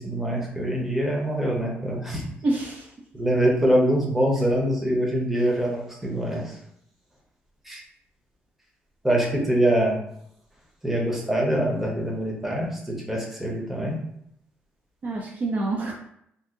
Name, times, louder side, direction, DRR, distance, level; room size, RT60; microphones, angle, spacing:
voice 1, 0.0-2.2 3.1-6.6 7.6-7.8 9.0-10.0 10.8-14.0, right 1 dB, 5° right, -2 dB, 0.9 m, -24 dB
voice 2, 2.4-2.9 9.1-9.2 15.0-15.9, right 2 dB, 40° right, -1 dB, 0.5 m, -27 dB
2.7 x 2.5 x 3.6 m, 0.72 s
cardioid pair, 130°, 4 cm